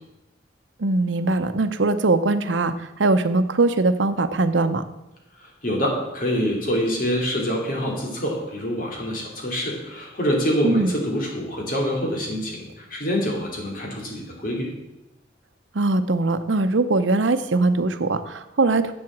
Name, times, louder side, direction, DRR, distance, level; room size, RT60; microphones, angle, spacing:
voice 1, 0.8-4.8 10.6-10.9 15.7-18.9, right 3 dB, 90° right, 11 dB, 0.7 m, -21 dB
voice 2, 5.4-14.7, equal, 50° left, -1 dB, 2.8 m, -26 dB
8.1 x 7.7 x 7.3 m, 0.94 s
head